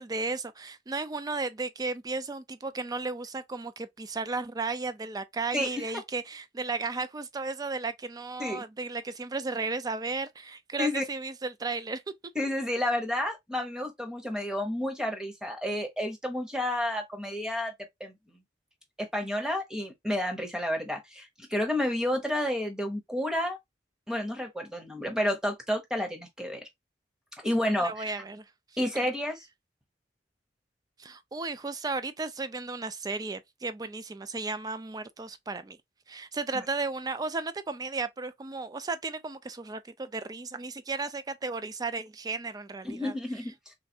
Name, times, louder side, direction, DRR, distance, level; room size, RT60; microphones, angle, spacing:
voice 1, 0.0-12.0 27.8-28.5 31.0-35.8 36.1-43.2, right 3 dB, 20° right, 0.4 m, -34 dB
voice 2, 5.5-5.8 8.4-8.6 10.8-11.0 12.3-17.7 18.0-18.1 19.0-23.6 24.1-26.6 27.4-28.0 28.8-29.4 42.8-43.7, left 1 dB, 5° right, 0.9 m, -30 dB
3.3 x 3.2 x 2.7 m
head